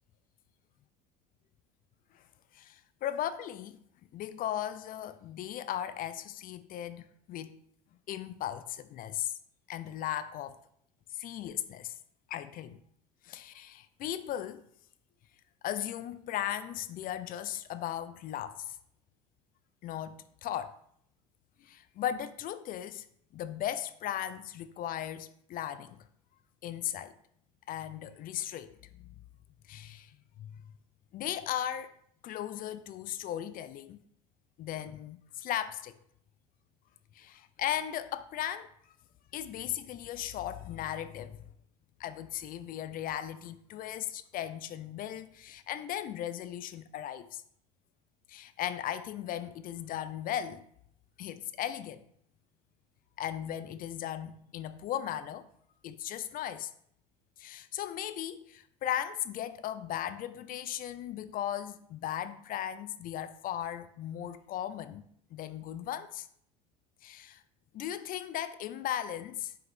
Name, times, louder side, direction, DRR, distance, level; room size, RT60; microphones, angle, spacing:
voice 1, 2.5-3.8 4.1-7.6 8.1-9.3 9.7-10.6 11.1-12.0 12.3-12.8 13.2-14.6 15.6-18.8 19.8-20.8 21.6-23.1 23.3-26.0 26.6-27.1 27.7-29.1 29.7-30.6 31.1-31.9 32.2-34.0 34.6-35.9 37.1-38.7 39.3-41.4 42.0-47.4 48.3-50.7 51.2-52.0 53.2-55.5 55.8-56.7 57.4-65.1 65.3-66.3 67.0-67.4 67.7-69.5, left 11 dB, 45° left, 0.5 m, -37 dB
6.4 x 4.6 x 3.6 m
hypercardioid pair, 80°, 20 cm